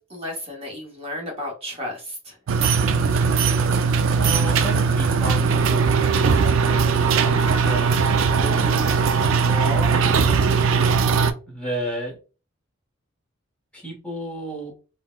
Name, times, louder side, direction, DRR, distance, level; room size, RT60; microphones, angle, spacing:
voice 1, 0.0-2.3, left 1 dB, 25° right, -1 dB, 0.8 m, -33 dB
sound 1, 2.5-11.3, right 5 dB, 65° right, 0.3 m, -19 dB
voice 2, 4.1-10.8 11.5-12.2 13.7-14.7, right 1 dB, 5° left, -2 dB, 0.8 m, -33 dB
3.9 x 2.0 x 2.2 m, 0.34 s
head